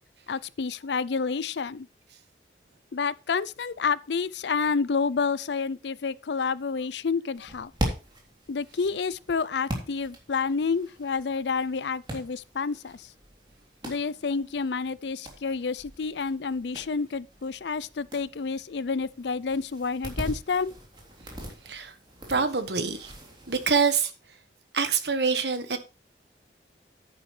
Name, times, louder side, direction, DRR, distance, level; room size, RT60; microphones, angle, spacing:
voice 1, 0.3-1.9 2.9-7.7 8.5-13.1 13.8-20.7, left 5 dB, 75° left, 0.5 m, -29 dB
sound 1, 7.3-23.8, right 1 dB, 25° right, 3.2 m, -40 dB
voice 2, 22.3-23.1 23.5-24.1 24.7-25.8, right 5 dB, 70° right, 1.5 m, -25 dB
10.5 x 9.6 x 3.3 m
head